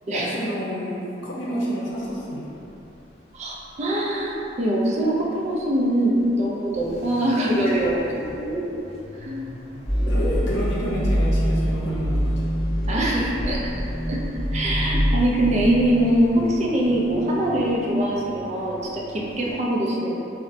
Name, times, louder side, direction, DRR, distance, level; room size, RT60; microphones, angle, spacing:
voice 1, 0.1-2.4 10.0-12.5 12.9-13.2, equal, 75° left, -6 dB, 0.7 m, -29 dB
sound 1, 1.9-19.6, left 1 dB, 30° left, 0.3 m, -44 dB
voice 2, 3.3-8.8 9.2-9.5 10.1-10.2 12.9-13.7 14.1-14.2 14.5-20.2, right 1 dB, 35° right, -4 dB, 0.4 m, -23 dB
sound 2, 9.9-17.8, equal, 5° left, 0.9 m, -25 dB
4.0 x 2.1 x 2.5 m, 2.8 s
head